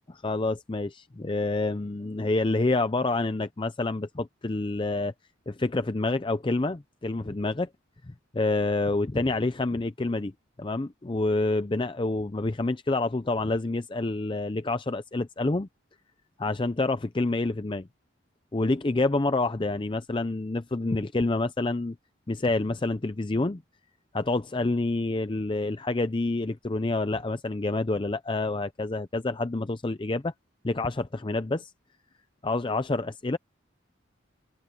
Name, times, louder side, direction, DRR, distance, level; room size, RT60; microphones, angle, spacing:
voice 1, 0.1-5.1 5.5-7.7 8.3-10.3 10.6-15.7 16.4-17.9 18.5-22.0 22.3-23.6 24.1-30.3 30.6-31.7 32.4-33.4, left 2 dB, 25° left, 0.5 m, -28 dB
open air
head